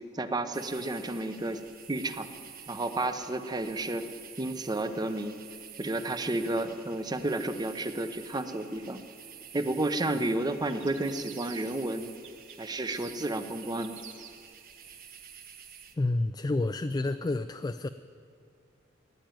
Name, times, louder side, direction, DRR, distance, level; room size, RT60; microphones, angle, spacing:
voice 1, 0.0-1.6 1.9-2.3 2.7-4.1 4.4-5.4 5.8-9.0 9.5-12.1 12.6-14.0, right 2 dB, 20° right, 9 dB, 0.7 m, -31 dB
sound 1, 0.5-15.9, right 8 dB, 50° right, 1.1 m, -49 dB
sound 2, 10.7-11.9 12.2-14.5, right 8 dB, 80° right, 1.2 m, -50 dB
voice 2, 16.0-17.9, left 2 dB, 20° left, 10 dB, 0.3 m, -29 dB
15.0 x 10.5 x 9.1 m, 2.3 s
head